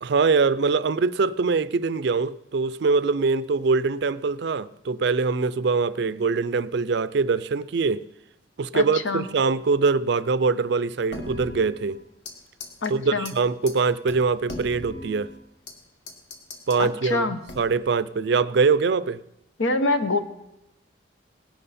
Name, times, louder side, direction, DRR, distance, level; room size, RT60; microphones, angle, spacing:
voice 1, 0.0-8.0 8.6-12.0 12.9-15.3 16.7-17.3 17.6-19.2, right 4 dB, 60° right, 0.4 m, -23 dB
voice 2, 8.7-9.2 12.8-13.3 16.8-17.4 19.6-20.2, left 3 dB, 80° left, 1.0 m, -25 dB
sound 1, 11.1-12.3 12.6-12.9 13.2-13.3 13.7-13.8 14.1-15.8 16.1-16.8 17.5-17.9, left 1 dB, 55° left, 1.6 m, -39 dB
18.0 x 11.0 x 4.2 m
head